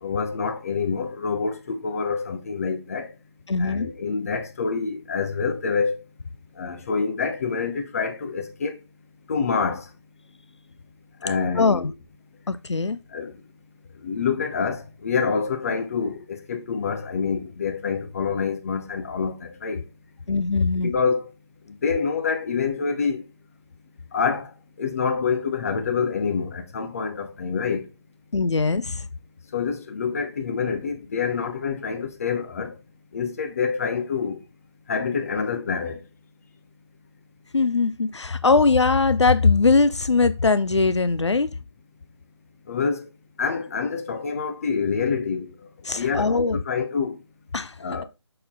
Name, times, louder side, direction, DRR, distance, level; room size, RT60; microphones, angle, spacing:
voice 1, 0.0-3.1 3.6-5.9 6.6-8.7 9.3-9.8 11.2-11.9 13.1-13.3 14.0-19.8 20.8-21.3 21.7-23.2 24.1-24.5 24.8-27.9 29.5-32.7 33.1-34.4 34.9-36.0 42.7-43.0 43.4-45.5 46.0-47.2 47.8-48.0, left 5 dB, 30° left, 1.0 m, -26 dB
voice 2, 3.5-3.9 11.6-11.9 12.5-13.0 20.3-20.9 28.3-29.1 37.5-41.5 45.8-46.6 47.5-48.0, left 4 dB, 80° left, 0.5 m, -21 dB
6.5 x 4.2 x 3.8 m
figure-of-eight pair, 155°, 15 cm